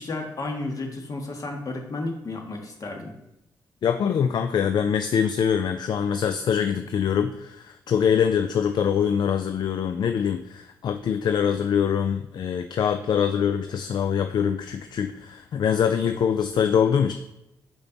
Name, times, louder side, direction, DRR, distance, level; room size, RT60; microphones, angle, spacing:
voice 1, 0.0-3.2, left 2 dB, 50° left, 2 dB, 1.6 m, -32 dB
voice 2, 3.8-17.1, left 7 dB, 65° left, 8 dB, 0.4 m, -24 dB
6.0 x 5.2 x 4.0 m, 0.90 s
cardioid pair, 60°, 8 cm